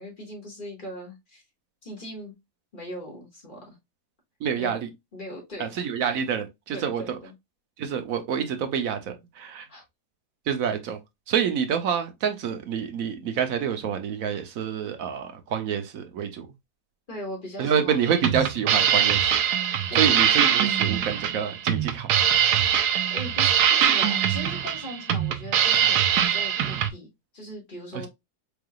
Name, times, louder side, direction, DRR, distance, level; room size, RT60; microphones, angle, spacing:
voice 1, 0.0-1.4 1.8-2.3 2.7-3.8 4.6-4.8 5.1-5.7 6.7-7.3 9.7-9.8 17.1-18.6 19.9-20.2 23.1-27.1 27.3-28.1, equal, 30° left, 2.1 m, -39 dB
voice 2, 4.4-4.9 5.6-7.2 7.8-9.7 10.5-11.0 11.3-16.5 17.6-19.4 19.9-22.1, right 7 dB, 65° right, 1.1 m, -27 dB
sound 1, 18.0-26.9, right 9 dB, 90° right, 1.2 m, -22 dB
4.6 x 3.4 x 2.3 m
omnidirectional pair, 1.7 m